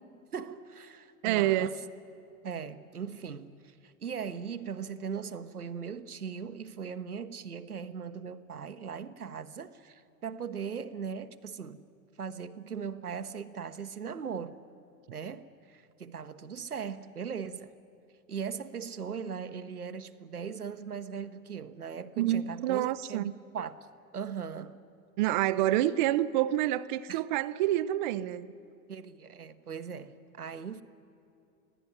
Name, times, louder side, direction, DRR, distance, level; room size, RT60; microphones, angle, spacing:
voice 1, 0.3-1.8 2.4-11.8 12.2-14.6 15.1-17.8 18.3-23.9 24.1-24.8 27.1-27.2 28.9-30.8, right 6 dB, 80° right, 1.0 m, -39 dB
voice 2, 1.2-1.7 22.2-23.3 25.2-28.5, right 14 dB, 35° right, 0.5 m, -27 dB
23.5 x 16.5 x 9.9 m
figure-of-eight pair, 95°, 45 cm